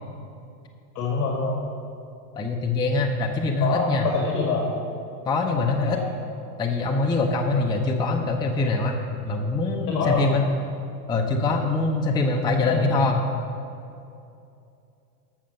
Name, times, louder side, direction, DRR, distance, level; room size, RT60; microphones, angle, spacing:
voice 1, 0.9-1.6 3.6-4.7 5.9-6.0 9.9-10.2 12.6-13.1, left 4 dB, 35° left, -2 dB, 2.1 m, -25 dB
voice 2, 2.4-4.1 5.2-6.0 6.6-10.4 11.1-13.2, left 3 dB, 10° left, 2 dB, 0.6 m, -24 dB
13.0 x 6.5 x 5.7 m, 2.6 s
hypercardioid pair, 115°, 49 cm